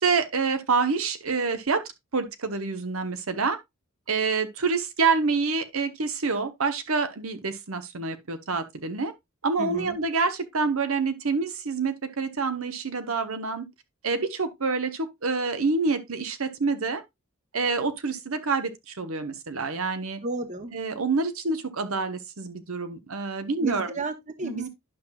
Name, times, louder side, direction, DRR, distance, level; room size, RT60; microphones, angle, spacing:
voice 1, 0.0-1.8 2.1-3.6 4.1-9.1 9.4-13.7 14.0-17.0 17.5-20.2 20.7-23.9 24.4-24.7, right 4 dB, 85° right, 1.1 m, -27 dB
voice 2, 9.6-10.0 20.2-20.7 23.6-24.7, right 2 dB, 35° right, 1.0 m, -32 dB
11.5 x 5.8 x 2.3 m
head